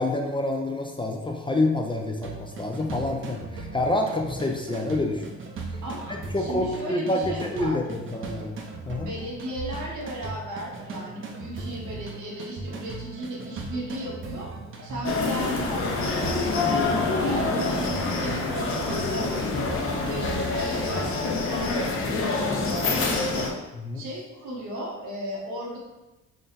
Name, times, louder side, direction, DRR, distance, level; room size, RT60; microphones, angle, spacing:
voice 1, 0.0-5.2 6.1-8.6 8.9-9.1 23.8-24.0, left 2 dB, 15° left, 2 dB, 0.4 m, -27 dB
sound 1, 2.2-21.3, right 3 dB, 40° right, 0.6 m, -38 dB
voice 2, 5.8-7.8 9.0-14.5 14.8-19.8 20.1-23.5 23.9-25.8, equal, 80° right, -4 dB, 1.2 m, -36 dB
sound 2, 15.0-23.5, left 3 dB, 45° left, 0.7 m, -26 dB
3.9 x 2.0 x 3.9 m, 1.0 s
cardioid pair, 90°, 30 cm